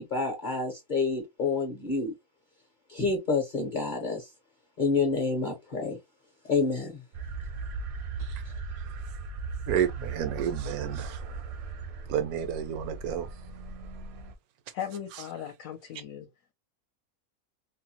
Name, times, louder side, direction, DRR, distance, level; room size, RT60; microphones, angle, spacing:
voice 1, 0.0-2.1 2.9-4.3 4.8-6.0 6.5-7.0, left 4 dB, 45° left, 0.7 m, -28 dB
sound 1, 7.1-14.3, right 4 dB, 65° right, 0.6 m, -38 dB
voice 2, 9.7-11.4 12.1-13.3, right 9 dB, 90° right, 1.1 m, -30 dB
voice 3, 14.7-16.3, left 9 dB, 70° left, 0.9 m, -37 dB
2.7 x 2.1 x 2.8 m
omnidirectional pair, 1.5 m